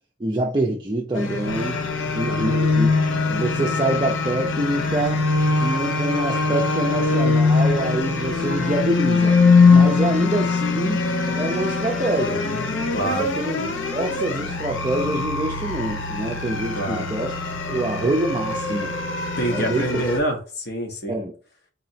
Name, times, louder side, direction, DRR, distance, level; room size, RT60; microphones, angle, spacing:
voice 1, 0.2-1.8 2.1-2.9 3.3-5.2 5.6-9.4 9.7-11.1 11.3-12.4 13.0-13.6 13.9-17.4 17.7-18.9 19.5-20.0 21.1-21.3, right 1 dB, 25° right, 0.4 m, -25 dB
sound 1, 1.1-20.2, left 4 dB, 85° left, 0.7 m, -22 dB
voice 2, 2.2-2.7 12.9-13.3 16.7-17.1 19.4-21.2, right 1 dB, 55° left, 1.0 m, -26 dB
4.0 x 2.9 x 2.7 m
head